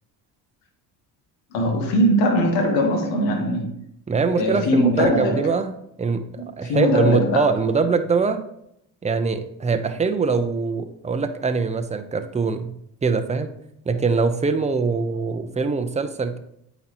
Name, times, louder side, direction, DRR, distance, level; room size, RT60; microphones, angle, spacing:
voice 1, 1.5-3.7 4.3-5.4 6.4-7.5, equal, 75° left, 3 dB, 1.4 m, -21 dB
voice 2, 4.1-5.7 6.0-6.2 6.5-8.4 9.0-12.7 13.0-13.5 13.8-16.4, right 4 dB, 15° right, 8 dB, 0.6 m, -23 dB
8.5 x 4.1 x 3.0 m, 0.75 s
supercardioid pair, 65°, 45 cm